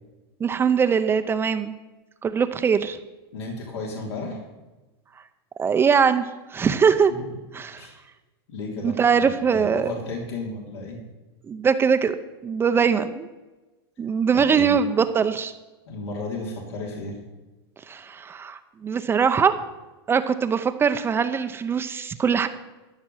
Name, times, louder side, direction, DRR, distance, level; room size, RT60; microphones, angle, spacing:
voice 1, 0.4-1.7 2.2-3.0 5.6-7.1 7.5-7.9 8.8-9.9 11.5-12.2 12.4-13.3 14.0-15.5 17.9-19.5 20.1-22.5, right 6 dB, 15° right, 9 dB, 0.6 m, -22 dB
voice 2, 3.3-4.4 7.1-7.2 7.7-8.0 8.5-8.9 9.5-11.0 14.3-14.8 15.9-17.2, left 2 dB, 80° left, -2 dB, 3.2 m, -33 dB
14.0 x 6.0 x 9.0 m, 1.1 s
supercardioid pair, 135°, 14 cm